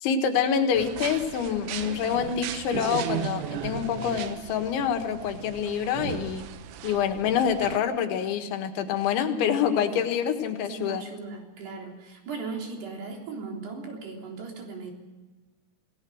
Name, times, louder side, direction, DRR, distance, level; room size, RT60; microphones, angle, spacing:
voice 1, 0.0-6.5 6.8-11.0, left 8 dB, 90° left, 6 dB, 4.1 m, -26 dB
sound 1, 0.7-7.8, right 10 dB, 85° right, 3.5 m, -36 dB
voice 2, 9.7-10.0 10.7-14.9, right 4 dB, 65° right, 1 dB, 5.6 m, -37 dB
27.5 x 18.0 x 6.4 m, 1.2 s
omnidirectional pair, 5.2 m